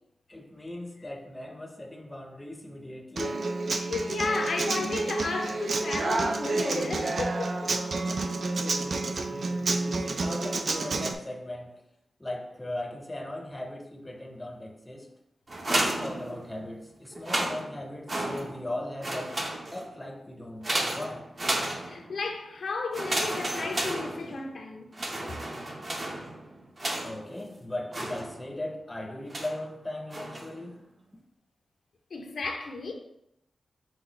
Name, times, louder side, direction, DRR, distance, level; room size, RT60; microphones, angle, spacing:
voice 1, 0.3-3.5 7.9-11.8 12.2-15.1 15.7-19.4 19.7-21.3 27.0-30.8, left 1 dB, 15° left, 0.6 m, -38 dB
Human voice / Acoustic guitar, 3.2-11.1, right 3 dB, 60° right, 0.4 m, -29 dB
voice 2, 3.8-7.7 21.8-24.9 32.1-32.9, left 3 dB, 70° left, 0.6 m, -33 dB
sound 1, 15.5-16.7 17.1-18.7 19.0-20.0 20.6-22.2 22.9-24.6 24.9-27.3 27.9-28.6 29.3-29.7 30.1-30.6, right 1 dB, 35° right, 0.8 m, -32 dB
6.0 x 2.2 x 3.9 m
wide cardioid pair, 100°, 0 cm